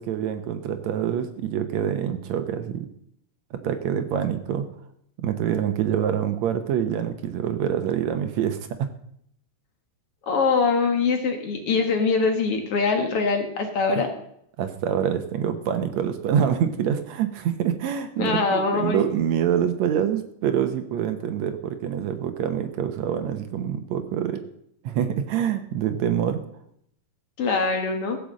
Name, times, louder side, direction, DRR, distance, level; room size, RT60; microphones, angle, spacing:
voice 1, 0.0-2.9 3.5-4.7 5.2-8.9 14.6-24.4 24.8-26.4, right 9 dB, 70° right, 9 dB, 2.1 m, -26 dB
voice 2, 10.3-14.1 18.2-19.0 27.4-28.2, left 4 dB, 55° left, 5 dB, 2.2 m, -23 dB
15.5 x 6.8 x 7.5 m, 0.71 s
omnidirectional pair, 3.5 m